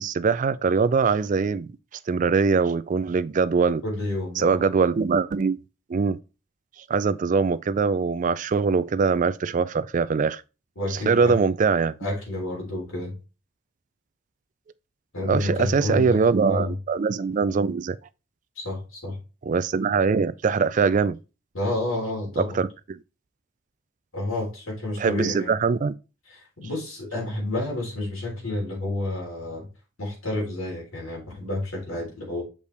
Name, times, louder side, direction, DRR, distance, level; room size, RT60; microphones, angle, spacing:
voice 1, 0.0-1.7 2.1-3.8 4.4-5.6 5.9-6.2 6.9-10.4 10.9-11.9 15.3-18.0 19.4-21.2 22.4-23.0 25.0-25.9, right 5 dB, 40° right, 0.3 m, -22 dB
voice 2, 3.8-4.7 10.8-11.3 12.0-13.1 15.1-16.7 18.6-19.2 21.5-22.6 24.1-25.5 26.3-29.7 30.0-32.4, left 1 dB, 85° left, 3.5 m, -30 dB
6.6 x 5.3 x 3.3 m
head